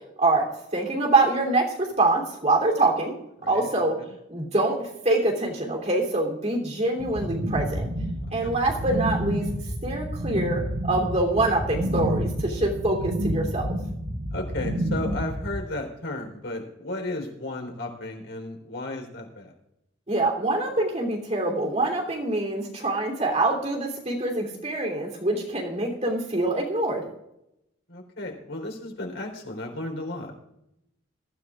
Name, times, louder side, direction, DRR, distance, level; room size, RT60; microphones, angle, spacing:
voice 1, 0.2-3.1 3.5-4.0 4.3-7.9 8.3-9.5 9.8-13.7 20.1-27.0, right 2 dB, 35° right, 0 dB, 3.2 m, -25 dB
sound 1, 7.0-15.5, equal, 75° right, 5.2 m, -29 dB
voice 2, 14.3-19.5 27.9-30.3, left 2 dB, 85° left, 2 dB, 3.9 m, -34 dB
22.0 x 14.0 x 2.5 m, 0.83 s
head